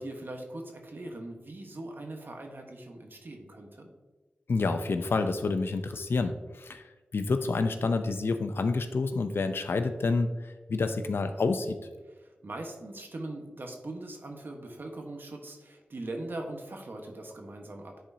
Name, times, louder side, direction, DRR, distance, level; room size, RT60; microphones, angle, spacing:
voice 1, 0.0-3.9 12.4-18.1, right 2 dB, 65° right, 2 dB, 1.2 m, -41 dB
voice 2, 4.5-6.8 7.1-11.8, left 3 dB, 80° left, 8 dB, 0.5 m, -28 dB
10.0 x 4.3 x 2.7 m, 1.2 s
cardioid pair, 45°, 4 cm